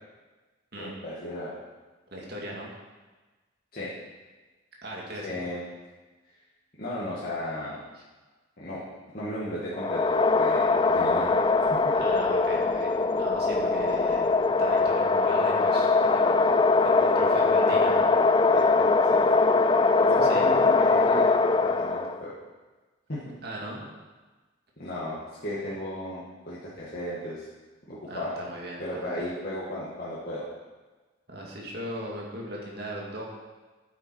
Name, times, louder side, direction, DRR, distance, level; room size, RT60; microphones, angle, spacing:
voice 1, 0.8-1.6 3.7-3.9 5.2-5.6 6.8-7.8 8.6-8.8 9.1-10.0 10.3-11.9 18.5-19.2 20.0-22.3 23.1-23.3 24.8-27.5 27.9-28.4 28.8-30.4, left 1 dB, 45° left, -9 dB, 2.0 m, -35 dB
voice 2, 2.1-2.7 4.8-5.4 11.9-14.3 14.6-18.1 20.2-20.5 23.4-23.9 28.1-29.3 31.3-33.3, right 1 dB, 50° right, -3 dB, 2.3 m, -38 dB
sound 1, 9.7-22.2, left 3 dB, 25° left, 0.3 m, -22 dB
10.5 x 8.5 x 4.6 m, 1.3 s
head